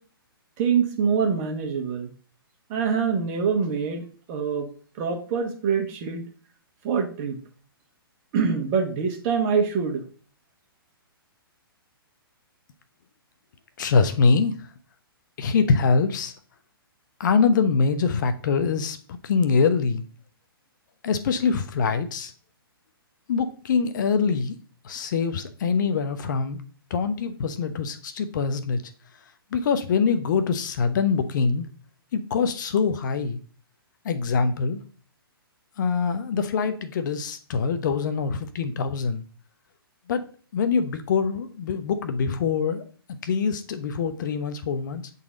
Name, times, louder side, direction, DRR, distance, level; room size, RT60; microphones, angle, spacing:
voice 1, 0.6-2.1 2.7-4.7 5.0-6.2 6.8-7.4 8.3-10.0, right 6 dB, 35° right, 4 dB, 1.5 m, -25 dB
voice 2, 13.8-14.7 15.4-16.3 17.2-20.0 21.0-22.3 23.3-24.6 24.8-26.6 26.9-28.8 29.5-31.7 32.1-33.4 34.0-34.8 35.8-39.2 40.1-40.2 40.5-42.8 43.2-45.1, left 5 dB, 50° left, 10 dB, 0.8 m, -24 dB
8.5 x 4.1 x 3.8 m, 0.42 s
hypercardioid pair, 130°, 13 cm